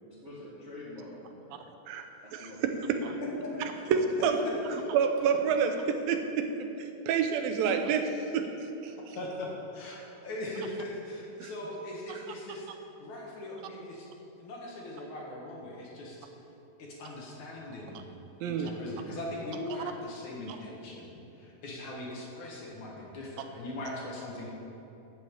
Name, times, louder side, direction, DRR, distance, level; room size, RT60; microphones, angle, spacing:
voice 1, 0.2-1.6 2.2-2.6 3.1-3.2 3.6-4.0, left 1 dB, 40° right, -7 dB, 1.1 m, -46 dB
voice 2, 1.9-3.2 3.9-4.4 4.9-8.0 8.3-8.9 11.4-11.5 12.1-12.2 18.1-18.7, right 6 dB, 90° right, 6 dB, 2.6 m, -29 dB
voice 3, 3.2-3.5 4.4-4.8 7.6-7.7 9.0-12.7 13.0-14.1 14.4-16.3 16.8-18.0 18.4-24.5, left 1 dB, 60° left, -2 dB, 2.9 m, -40 dB
12.5 x 5.6 x 8.4 m, 3.0 s
omnidirectional pair, 4.0 m